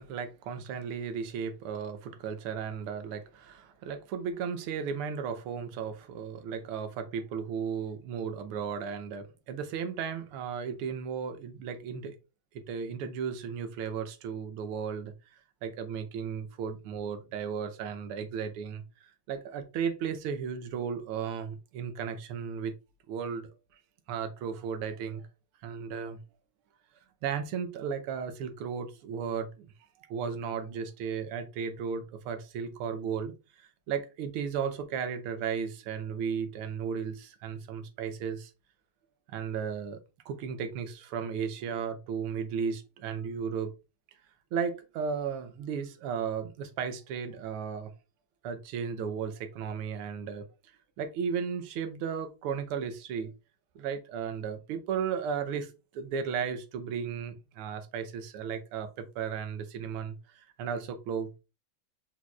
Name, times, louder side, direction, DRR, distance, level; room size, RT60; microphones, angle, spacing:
voice 1, 0.0-12.2 12.5-15.1 15.6-18.8 19.3-22.8 23.1-23.5 24.1-25.2 25.6-26.2 27.2-29.7 30.1-38.5 39.3-40.0 40.2-43.7 44.5-47.9 48.4-50.4 51.0-53.3 53.7-61.4, right 6 dB, 90° right, 1.6 m, -35 dB
4.5 x 4.2 x 2.3 m
omnidirectional pair, 2.3 m